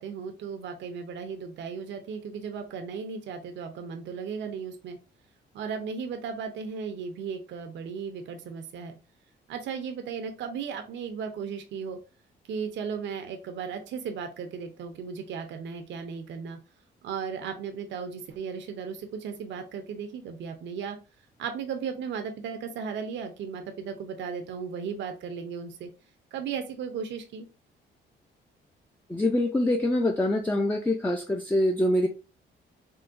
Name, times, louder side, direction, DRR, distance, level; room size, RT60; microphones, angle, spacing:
voice 1, 0.0-5.0 5.5-9.0 9.5-12.0 12.5-16.6 17.0-21.0 21.4-25.9 26.3-27.5, right 6 dB, 65° right, 6 dB, 0.5 m, -36 dB
voice 2, 29.1-32.1, left 1 dB, 10° left, 3 dB, 0.4 m, -25 dB
3.7 x 2.1 x 2.5 m, 0.32 s
cardioid pair, 90°, 20 cm